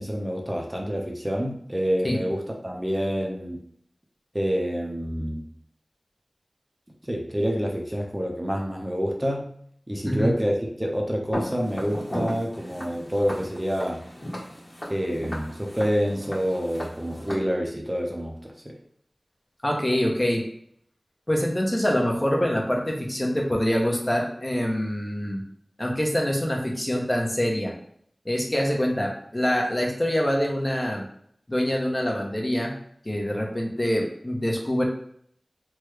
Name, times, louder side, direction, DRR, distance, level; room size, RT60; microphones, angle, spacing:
voice 1, 0.0-3.6 4.3-5.5 7.0-9.5 9.9-14.0 14.9-18.8, equal, 20° right, -1 dB, 0.6 m, -27 dB
Walk footsteps, 11.3-17.3, equal, 50° left, 1.3 m, -36 dB
voice 2, 19.6-20.4 21.3-25.4 25.8-27.7 28.3-31.0 31.5-32.7 33.0-34.8, equal, 30° left, 0 dB, 0.8 m, -25 dB
3.4 x 2.2 x 3.1 m, 0.65 s
wide cardioid pair, 50°, 0 cm